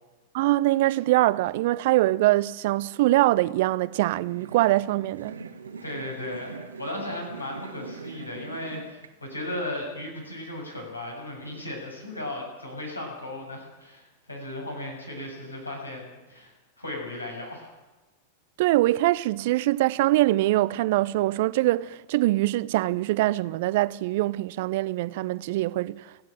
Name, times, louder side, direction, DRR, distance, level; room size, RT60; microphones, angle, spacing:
voice 1, 0.3-5.4 18.6-26.3, right 17 dB, 50° right, 0.6 m, -23 dB
sound 1, 3.9-9.1, right 5 dB, 70° right, 1.6 m, -42 dB
voice 2, 5.8-17.7, left 1 dB, 80° left, 7.6 m, -36 dB
30.0 x 10.5 x 9.0 m
figure-of-eight pair, 90°, 0 cm